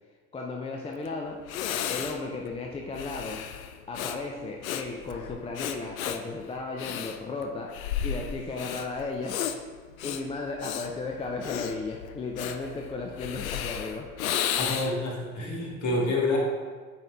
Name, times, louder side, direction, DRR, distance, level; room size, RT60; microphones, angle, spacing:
voice 1, 0.3-1.4 1.9-3.4 3.9-7.7 8.0-9.4 10.0-14.1, left 3 dB, 15° left, 1 dB, 0.5 m, -35 dB
Breathing, 1.0-1.1 1.5-15.1, left 9 dB, 70° left, 0.6 m, -34 dB
voice 2, 14.6-16.4, left 2 dB, 40° left, -2 dB, 1.9 m, -28 dB
8.8 x 4.3 x 3.4 m, 1.5 s
figure-of-eight pair, 70°, 43 cm